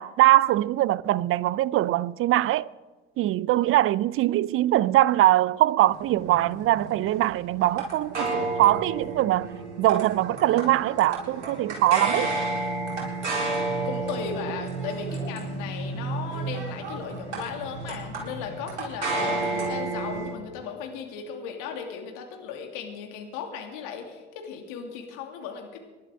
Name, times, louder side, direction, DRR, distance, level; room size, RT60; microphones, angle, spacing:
voice 1, 0.0-2.7 3.2-9.5 9.8-12.3, right 15 dB, 40° right, 0.5 m, -22 dB
sound 1, 5.9-20.3, right 3 dB, 85° right, 4.1 m, -31 dB
voice 2, 13.8-25.8, left 6 dB, 60° left, 2.6 m, -36 dB
26.0 x 11.5 x 3.7 m
hypercardioid pair, 70°, 34 cm